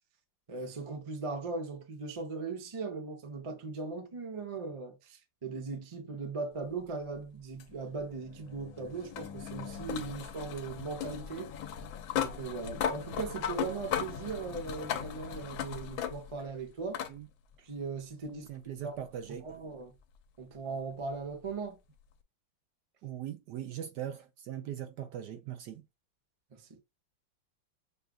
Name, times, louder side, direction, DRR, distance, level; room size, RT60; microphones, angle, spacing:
voice 1, 0.5-11.5 12.2-17.0 17.6-18.5 18.8-19.0 19.4-20.0 20.4-21.8 26.5-26.8, right 4 dB, 35° right, 0.5 m, -39 dB
sound 1, 7.6-16.5 16.9-17.1 18.5-18.6 21.5-21.6, left 8 dB, 80° left, 1.5 m, -37 dB
voice 2, 18.3-19.5 23.0-25.8, right 10 dB, 70° right, 1.1 m, -40 dB
6.5 x 2.4 x 2.3 m
omnidirectional pair, 2.2 m